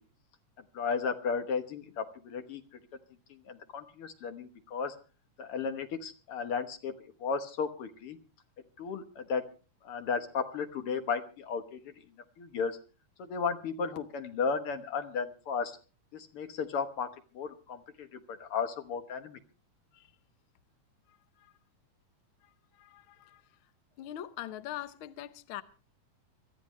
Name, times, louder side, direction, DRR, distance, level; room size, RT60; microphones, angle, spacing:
voice 1, 0.7-2.6 3.3-5.0 5.4-6.9 7.2-8.2 8.8-9.5 9.8-11.9 12.4-12.8 13.2-15.8 16.1-19.4, left 5 dB, 60° left, 1.7 m, -34 dB
voice 2, 22.8-23.4 24.0-25.6, left 12 dB, 90° left, 1.1 m, -42 dB
26.0 x 13.0 x 3.2 m
omnidirectional pair, 3.6 m